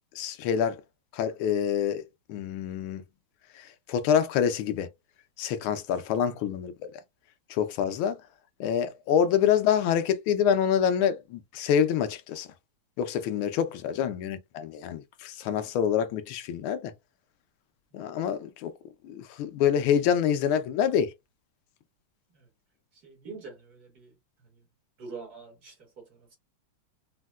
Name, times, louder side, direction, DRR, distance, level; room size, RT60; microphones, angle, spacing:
voice 1, 0.1-0.8 1.1-2.0 2.3-3.0 3.6-4.9 5.4-6.9 7.5-8.2 8.6-12.5 13.0-16.9 17.9-18.7 19.0-21.1, left 8 dB, 85° left, 1.4 m, -26 dB
voice 2, 23.0-24.1 25.0-26.4, right 4 dB, 55° right, 1.5 m, -45 dB
4.3 x 2.1 x 2.2 m
omnidirectional pair, 2.2 m